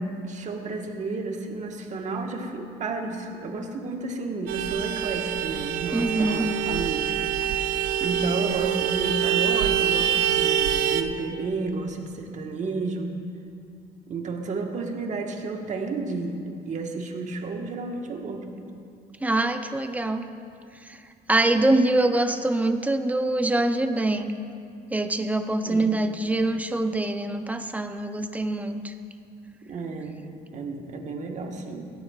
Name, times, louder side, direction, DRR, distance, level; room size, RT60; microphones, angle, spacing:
voice 1, 0.0-13.1 14.1-18.5 25.6-26.1 29.6-30.2 30.5-31.8, right 3 dB, 45° right, 2 dB, 1.4 m, -32 dB
Vehicle horn car horn honking, 4.5-11.0, right 10 dB, 80° right, 0.6 m, -25 dB
voice 2, 5.9-6.4 19.2-20.3 21.3-24.3 24.9-28.9, right 2 dB, 10° right, 7 dB, 0.6 m, -24 dB
17.0 x 13.0 x 2.4 m, 2.4 s
cardioid pair, 110°, 17 cm